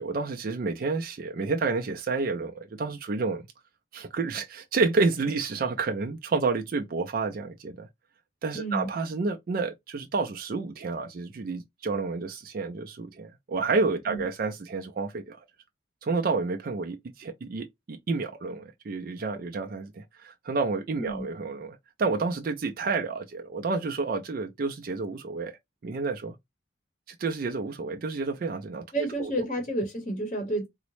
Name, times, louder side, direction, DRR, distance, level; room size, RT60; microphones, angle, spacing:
voice 1, 0.0-3.4 3.9-7.9 8.4-15.4 16.0-25.5 25.8-26.3 27.1-28.8 29.2-29.3, right 4 dB, 45° right, 0.4 m, -30 dB
voice 2, 8.5-8.9 14.1-14.2 21.0-21.2 28.9-30.7, right 1 dB, 35° left, 0.8 m, -30 dB
3.7 x 2.1 x 3.0 m
head